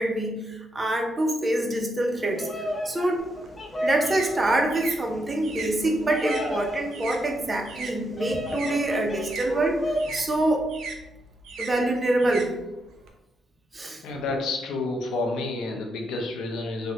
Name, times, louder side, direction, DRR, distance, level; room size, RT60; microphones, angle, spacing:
voice 1, 0.0-2.5 2.8-3.2 3.8-9.8 10.1-10.7 11.6-12.5 13.7-14.0, right 1 dB, 25° right, 3 dB, 0.5 m, -25 dB
Bird vocalization bird call bird song, 2.1-10.2, left 1 dB, 15° left, 0.7 m, -33 dB
sound 1, 3.2-8.0 8.3-13.1, right 4 dB, 75° right, 0.4 m, -39 dB
voice 2, 14.0-16.9, left 3 dB, 85° left, 2 dB, 0.6 m, -29 dB
3.2 x 2.1 x 2.8 m, 0.97 s
cardioid pair, 90°, 0 cm